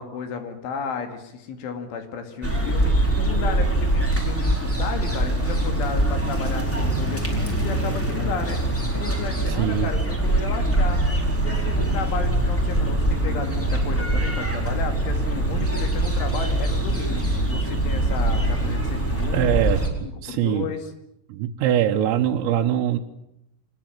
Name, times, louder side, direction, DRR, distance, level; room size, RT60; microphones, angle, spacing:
voice 1, 0.0-8.6 8.9-11.0 11.4-19.6 20.0-20.9, left 5 dB, 70° left, 7 dB, 4.6 m, -33 dB
sound 1, 2.4-19.9, right 1 dB, 5° left, 3.7 m, -23 dB
voice 2, 9.5-9.9 19.3-19.8 20.2-20.7 21.3-23.0, right 11 dB, 80° right, 2 dB, 3.7 m, -22 dB
26.0 x 20.5 x 9.1 m, 0.81 s
omnidirectional pair, 6.0 m